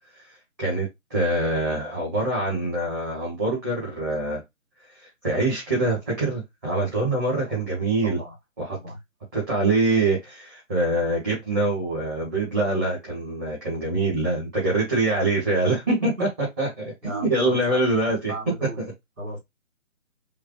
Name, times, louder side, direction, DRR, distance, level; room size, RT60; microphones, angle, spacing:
voice 1, 0.6-4.4 5.0-8.2 8.6-8.8 9.3-16.3 16.6-18.3, right 2 dB, 15° right, 1.0 m, -24 dB
voice 2, 7.1-7.6 8.0-8.4 8.7-9.0 16.0-16.3 17.0-17.8 18.3-18.9 19.2-19.4, equal, 70° right, 2.2 m, -36 dB
4.9 x 2.1 x 3.0 m
figure-of-eight pair, 145°, 40 cm